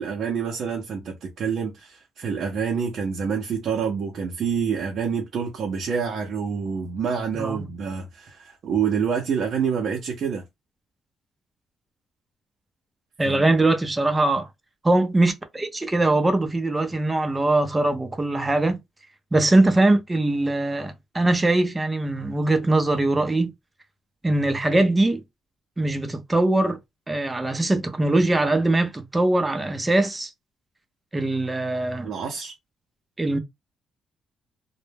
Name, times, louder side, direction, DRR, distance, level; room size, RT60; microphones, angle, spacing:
voice 1, 0.0-10.4 13.2-13.5 32.0-32.5, right 6 dB, 60° right, 0.6 m, -27 dB
voice 2, 7.3-7.6 13.2-14.5 14.8-18.8 19.3-23.5 24.2-25.2 25.8-26.8 27.1-30.3 31.1-32.1 33.2-33.4, right 2 dB, 15° right, 0.5 m, -21 dB
2.1 x 2.0 x 3.2 m
cardioid pair, 95°, 0 cm